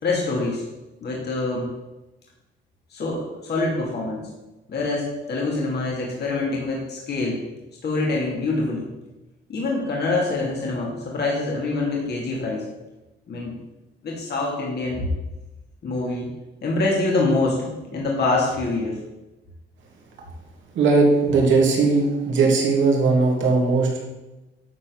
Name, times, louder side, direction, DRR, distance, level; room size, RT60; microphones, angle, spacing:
voice 1, 0.0-0.6 1.0-1.7 2.9-4.3 4.7-7.4 7.8-8.9 9.5-12.7 13.3-13.5 14.0-15.1 15.8-16.3 16.6-19.0, left 2 dB, 55° left, -3 dB, 2.9 m, -25 dB
voice 2, 20.7-24.0, right 3 dB, 75° right, -1 dB, 3.1 m, -19 dB
12.0 x 4.4 x 7.2 m, 1.1 s
cardioid pair, 90°, 20 cm